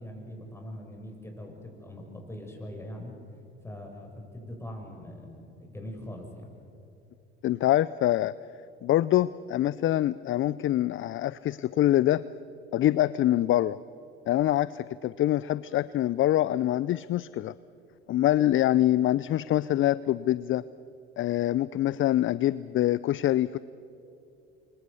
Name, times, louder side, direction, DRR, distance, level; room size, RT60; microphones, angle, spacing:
voice 1, 0.0-3.1 3.6-6.5, left 1 dB, 10° left, 2 dB, 7.1 m, -42 dB
voice 2, 7.4-8.3 8.8-12.2 12.7-13.8 14.3-17.5 18.1-20.6 21.2-23.6, left 13 dB, 40° left, 18 dB, 0.6 m, -25 dB
29.0 x 25.0 x 7.0 m, 2.8 s
hypercardioid pair, 65°, 31 cm